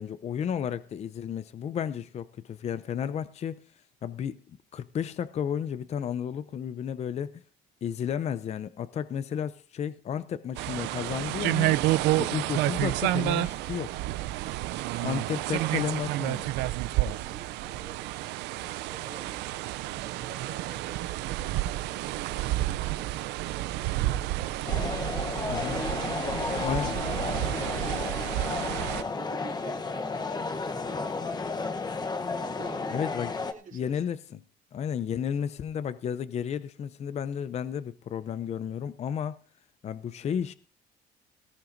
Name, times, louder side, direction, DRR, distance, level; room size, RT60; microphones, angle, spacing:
voice 1, 0.0-3.6 4.0-7.4 7.8-11.8 12.2-14.0 15.0-16.4 25.5-25.8 26.6-26.9 32.9-33.3 33.7-34.4 34.7-39.4 39.8-40.5, left 8 dB, 40° left, 0.5 m, -32 dB
sound 1, 10.6-29.0, right 16 dB, 90° right, 0.5 m, -30 dB
voice 2, 15.2-16.1 17.0-19.5 19.8-23.0 23.5-26.8 27.1-28.3 28.7-31.8 32.4-33.0 33.4-34.0, right 6 dB, 50° right, 2.5 m, -49 dB
sound 2, 24.7-33.5, left 4 dB, 25° left, 0.9 m, -32 dB
19.0 x 14.0 x 2.6 m
cardioid pair, 110°, 17 cm